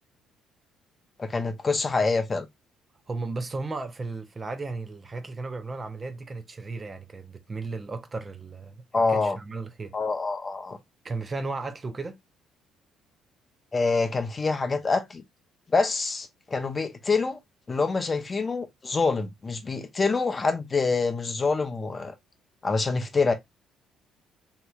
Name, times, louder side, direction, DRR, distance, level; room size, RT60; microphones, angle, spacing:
voice 1, 1.2-2.5 8.9-9.4 9.9-10.8 13.7-15.2 15.7-17.4 17.7-22.1 22.6-23.3, left 4 dB, 30° left, 0.6 m, -26 dB
voice 2, 3.1-9.9 11.0-12.2, right 3 dB, 30° right, 0.6 m, -35 dB
3.0 x 2.8 x 2.3 m
hypercardioid pair, 50°, 0 cm